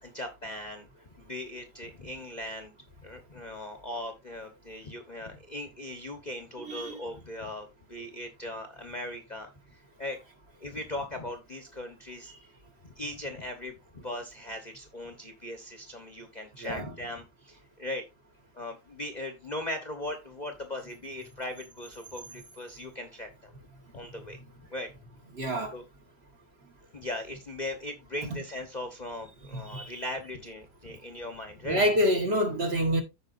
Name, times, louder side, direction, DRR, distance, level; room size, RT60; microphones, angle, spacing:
voice 1, 0.0-0.9 1.1-2.7 3.0-10.2 10.6-12.3 12.9-18.0 18.5-23.3 23.9-24.4 24.7-24.9 25.7-25.8 26.9-31.8, left 1 dB, 30° left, 1.1 m, -39 dB
voice 2, 6.6-7.0 16.6-16.9 25.3-25.7 29.5-29.9 31.6-33.0, equal, 40° right, 1.6 m, -27 dB
14.0 x 4.9 x 2.6 m
omnidirectional pair, 1.7 m